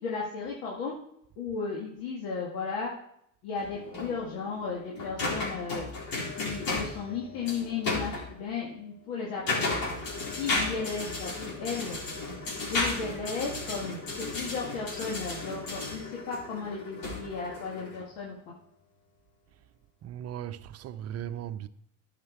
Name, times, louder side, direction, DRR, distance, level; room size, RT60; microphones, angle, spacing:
voice 1, 0.0-0.9 1.4-2.9 3.4-5.8 6.4-9.8 10.4-12.0 12.7-18.5, left 5 dB, 85° left, 2.2 m, -35 dB
sound 1, 3.6-8.3 9.1-18.0, left 3 dB, 60° left, 4.1 m, -34 dB
voice 2, 20.0-21.7, right 10 dB, 40° right, 0.7 m, -37 dB
11.0 x 6.6 x 4.6 m
supercardioid pair, 100°, 40 cm